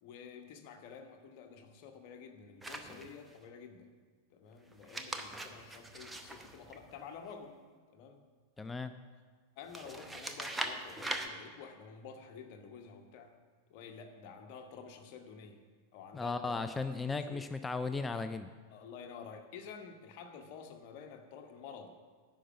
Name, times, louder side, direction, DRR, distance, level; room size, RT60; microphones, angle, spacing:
voice 1, 0.0-3.9 4.3-7.6 7.9-8.2 9.6-13.4 13.7-15.6 15.9-16.8 17.2-17.4 18.7-22.0, left 6 dB, 45° left, 4 dB, 1.1 m, -50 dB
sound 1, 2.6-3.4 4.7-7.3 9.7-11.3, right 2 dB, 10° right, 0.8 m, -41 dB
voice 2, 8.6-8.9 16.1-18.5, left 4 dB, 10° left, 10 dB, 0.4 m, -36 dB
10.0 x 5.7 x 7.6 m, 1.5 s
figure-of-eight pair, 90°, 0 cm